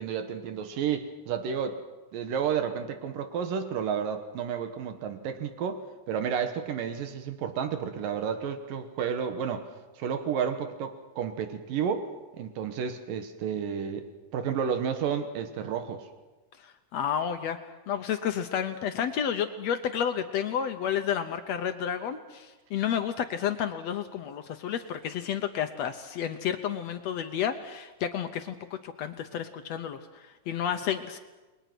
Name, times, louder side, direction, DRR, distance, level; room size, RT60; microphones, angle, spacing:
voice 1, 0.0-1.8 2.1-5.8 6.1-9.7 10.0-12.1 12.4-14.0 14.3-16.1, right 7 dB, 75° right, 7 dB, 3.0 m, -31 dB
voice 2, 16.6-17.6 17.9-31.2, left 9 dB, 70° left, 8 dB, 1.7 m, -31 dB
29.5 x 21.5 x 6.1 m, 1.2 s
omnidirectional pair, 4.0 m